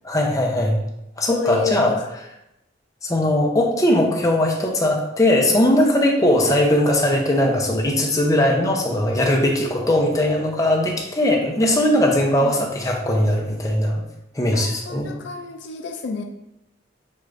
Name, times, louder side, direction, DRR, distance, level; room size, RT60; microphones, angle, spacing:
voice 1, 0.0-0.8 1.2-1.9 3.0-14.0 14.3-15.1, left 1 dB, 20° left, 0 dB, 0.6 m, -19 dB
voice 2, 1.3-1.8 6.2-6.5 12.4-12.6 14.5-16.2, left 5 dB, 65° left, 4 dB, 0.4 m, -29 dB
6.3 x 2.4 x 3.2 m, 0.86 s
head